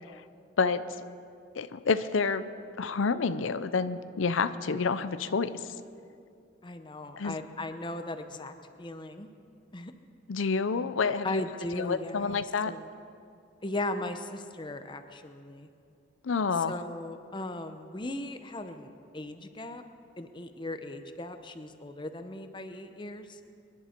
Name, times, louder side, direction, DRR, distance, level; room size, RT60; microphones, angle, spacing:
voice 1, 1.5-2.5 2.8-5.5 7.2-7.4 10.3-11.4 11.8-12.7 16.2-16.8, left 5 dB, 90° left, 12 dB, 0.6 m, -28 dB
voice 2, 6.6-9.3 9.7-9.9 11.2-12.4 12.6-12.8 13.6-15.7 16.7-19.8 20.2-23.4, left 2 dB, 25° left, 8 dB, 0.7 m, -38 dB
26.0 x 11.0 x 4.5 m, 2.5 s
head